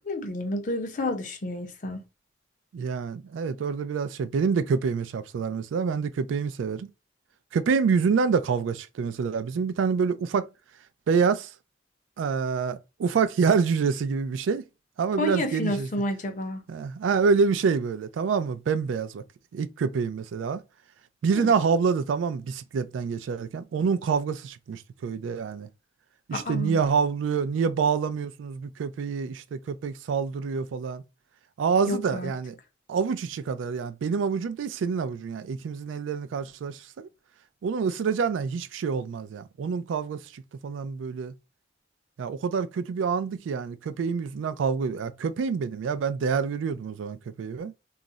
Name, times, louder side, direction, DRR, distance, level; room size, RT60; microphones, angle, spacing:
voice 1, 0.1-2.0 15.2-16.6 21.3-21.5 26.3-26.8 31.9-32.3, left 1 dB, 40° left, 0.5 m, -30 dB
voice 2, 2.7-6.9 7.5-10.5 11.1-11.5 12.2-14.6 15.0-15.9 16.7-19.2 19.5-20.6 21.2-25.7 26.3-31.0 31.6-32.6 32.9-37.1 37.6-41.3 42.2-47.7, right 5 dB, 85° right, 0.3 m, -27 dB
2.3 x 2.0 x 3.8 m
head